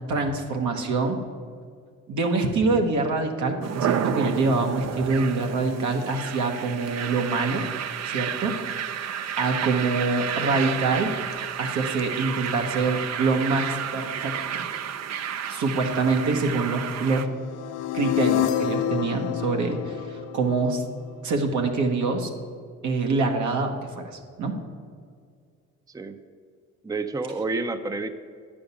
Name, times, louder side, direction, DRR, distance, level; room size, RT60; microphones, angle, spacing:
voice 1, 0.1-1.2 2.1-7.6 8.1-8.5 9.4-11.1 11.6-14.7 15.5-17.3 17.9-20.8 21.2-22.3 22.8-24.5, right 3 dB, 75° right, 3 dB, 1.4 m, -25 dB
sound 1, 3.6-17.2, right 8 dB, 60° right, 0.6 m, -31 dB
sound 2, 17.3-21.4, left 11 dB, 90° left, 0.6 m, -28 dB
voice 2, 26.8-28.1, right 3 dB, 10° right, 9 dB, 0.5 m, -29 dB
10.0 x 5.2 x 8.3 m, 2.1 s
cardioid pair, 90°, 30 cm